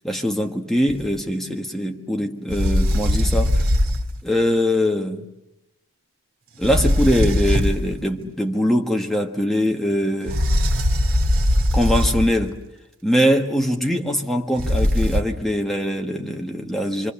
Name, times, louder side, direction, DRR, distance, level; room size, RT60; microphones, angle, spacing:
voice 1, 0.0-3.6 4.2-5.3 6.6-10.4 11.7-12.6 13.0-17.1, equal, ahead, 1.5 m, -22 dB
sound 1, 0.9-1.1 2.5-4.2 6.6-8.0 10.3-12.5 14.6-15.2, left 1 dB, 70° right, 2.7 m, -20 dB
25.5 x 25.0 x 7.1 m
head